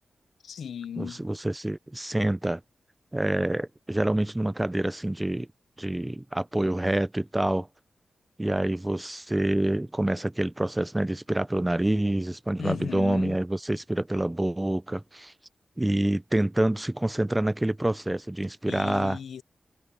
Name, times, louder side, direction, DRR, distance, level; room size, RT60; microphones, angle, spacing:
voice 1, 0.4-1.2 12.6-13.4 18.7-19.4, left 7 dB, 90° left, 0.6 m, -35 dB
voice 2, 1.0-2.6 3.1-5.5 5.8-7.7 8.4-15.3 15.8-19.2, right 1 dB, 15° right, 0.3 m, -27 dB
cardioid pair, 65°, 0 cm